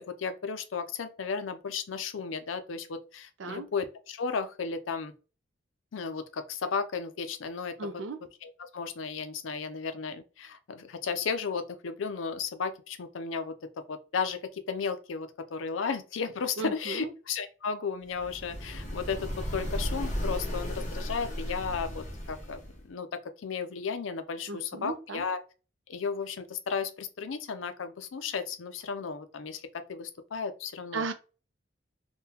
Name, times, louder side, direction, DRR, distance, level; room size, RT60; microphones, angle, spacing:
voice 1, 0.0-5.1 5.9-7.7 8.4-13.5 13.9-23.1 23.4-25.4 25.9-31.1, left 5 dB, 90° left, 0.5 m, -34 dB
voice 2, 7.8-8.2 16.6-17.1 24.5-25.2 30.9-31.1, right 4 dB, 80° right, 0.5 m, -35 dB
sound 1, 18.1-22.9, equal, 40° left, 0.9 m, -35 dB
3.7 x 2.3 x 2.8 m
head